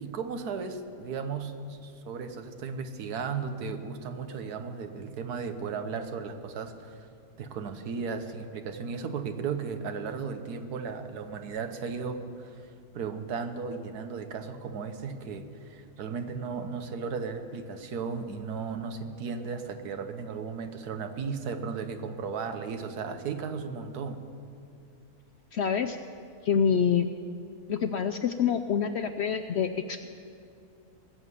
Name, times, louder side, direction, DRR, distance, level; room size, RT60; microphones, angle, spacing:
voice 1, 0.0-7.1 7.4-12.6 12.9-24.2, right 5 dB, 85° right, 8 dB, 1.5 m, -35 dB
voice 2, 25.5-26.0 26.4-27.1 27.7-30.1, left 7 dB, 70° left, 8 dB, 0.6 m, -26 dB
19.0 x 7.4 x 8.2 m, 2.5 s
omnidirectional pair, 1.6 m